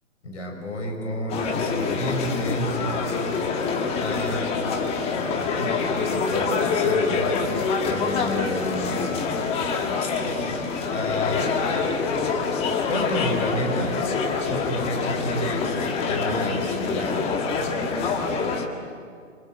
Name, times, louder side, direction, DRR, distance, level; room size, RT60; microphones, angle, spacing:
voice 1, 0.2-2.8 3.9-4.6 5.3-7.4 7.9-9.2 10.0-11.6 12.9-14.1 14.5-17.3, left 1 dB, 60° left, 3 dB, 6.2 m, -30 dB
sound 1, 1.3-18.7, left 4 dB, 15° left, 1.7 m, -26 dB
27.0 x 25.5 x 7.9 m, 2.2 s
figure-of-eight pair, 130°, 40 cm